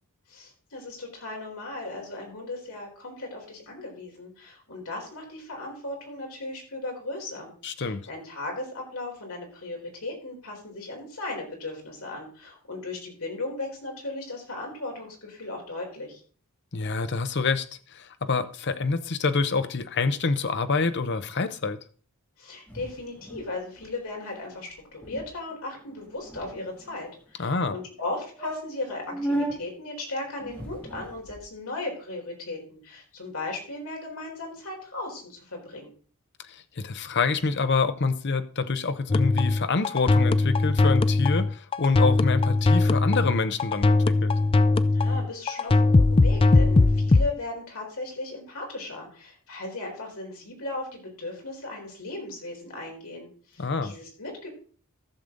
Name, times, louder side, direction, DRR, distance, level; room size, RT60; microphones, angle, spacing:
voice 1, 0.3-7.5 7.8-16.2 22.4-35.9 44.9-54.5, left 2 dB, 70° left, 4.1 m, -37 dB
voice 2, 7.6-8.1 16.7-17.7 17.9-21.8 27.4-27.8 36.5-44.3 53.6-53.9, left 4 dB, 50° left, 0.8 m, -27 dB
sound 1, 22.7-23.5 23.8-23.9 24.2-24.4 24.7-24.8 25.0-25.3 25.9-26.9 27.6-27.7 28.0-28.1 28.4-29.6 30.4-31.4, right 1 dB, 10° left, 2.6 m, -34 dB
sound 2, 39.1-47.3, left 3 dB, 25° left, 0.3 m, -20 dB
14.0 x 6.7 x 3.9 m
head